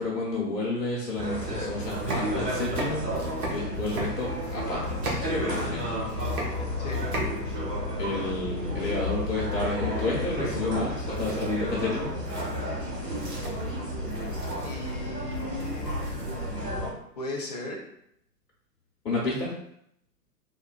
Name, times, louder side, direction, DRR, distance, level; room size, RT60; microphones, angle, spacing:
voice 1, 0.0-3.0 3.5-5.9 8.0-12.1 19.0-19.5, left 2 dB, 75° left, -5 dB, 1.0 m, -31 dB
sound 1, 1.1-1.2 1.7-5.8 6.1-7.7 8.0-8.1 10.6-10.9 11.1-16.6, right 1 dB, 60° right, 1.0 m, -38 dB
sound 2, 1.2-16.9, equal, 80° right, 1.2 m, -31 dB
voice 2, 14.6-16.6 17.2-17.8, left 1 dB, 30° left, -2 dB, 0.4 m, -37 dB
3.7 x 2.1 x 2.5 m, 0.73 s
figure-of-eight pair, 115°, 48 cm